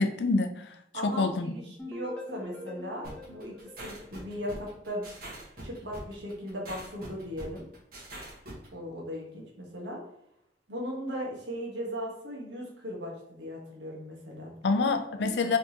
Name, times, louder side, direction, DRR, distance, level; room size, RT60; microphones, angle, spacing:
voice 1, 0.0-0.8 1.0-1.5 14.6-15.6, left 3 dB, 75° left, 7 dB, 0.5 m, -26 dB
voice 2, 0.9-5.0 5.6-7.6 8.7-10.0 10.7-14.5 15.2-15.5, equal, 85° right, -2 dB, 1.4 m, -38 dB
sound 1, 1.8-4.7, left 1 dB, 5° left, 0.7 m, -43 dB
sound 2, 3.0-8.7, right 1 dB, 55° right, 1.5 m, -44 dB
4.6 x 3.5 x 2.9 m, 0.75 s
head